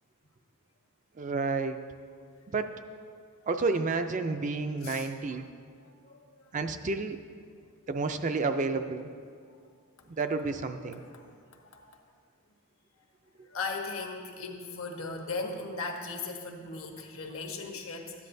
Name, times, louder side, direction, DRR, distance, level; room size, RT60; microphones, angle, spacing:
voice 1, 1.2-1.8 2.5-2.7 3.5-5.5 6.5-7.2 7.9-9.1 10.2-11.0, right 3 dB, 35° right, 8 dB, 0.4 m, -30 dB
voice 2, 11.0-11.4 11.9-12.0 13.4-18.3, left 3 dB, 65° left, 2 dB, 1.1 m, -37 dB
13.5 x 9.5 x 2.6 m, 2.1 s
head